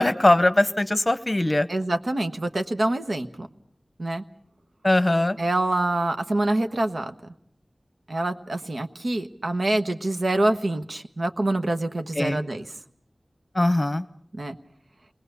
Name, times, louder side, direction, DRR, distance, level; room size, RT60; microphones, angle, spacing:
voice 1, 0.0-1.7 4.8-5.4 12.2-12.4 13.5-14.0, left 1 dB, 25° left, 12 dB, 0.9 m, -20 dB
voice 2, 1.7-3.5 4.0-4.2 5.4-7.1 8.1-12.6 14.3-14.6, right 2 dB, 65° right, 7 dB, 1.2 m, -26 dB
28.5 x 20.0 x 6.9 m, 0.66 s
wide cardioid pair, 70°, 0 cm